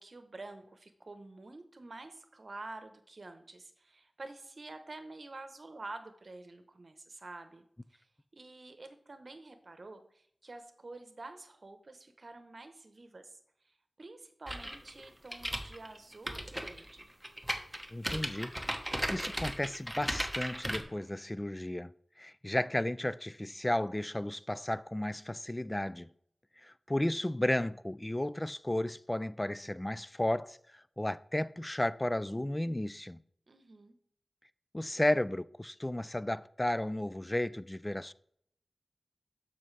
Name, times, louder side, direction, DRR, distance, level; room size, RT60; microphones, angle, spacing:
voice 1, 0.0-7.6 7.9-8.1 8.3-13.4 13.6-17.1 33.5-34.0, right 2 dB, 55° right, 0.9 m, -48 dB
sound 1, 14.5-20.8, equal, 5° right, 1.2 m, -36 dB
voice 2, 17.9-18.5 19.1-21.9 22.2-26.1 26.6-33.2 34.7-38.1, left 1 dB, 20° left, 0.3 m, -33 dB
12.5 x 5.6 x 3.3 m
cardioid pair, 45°, 0 cm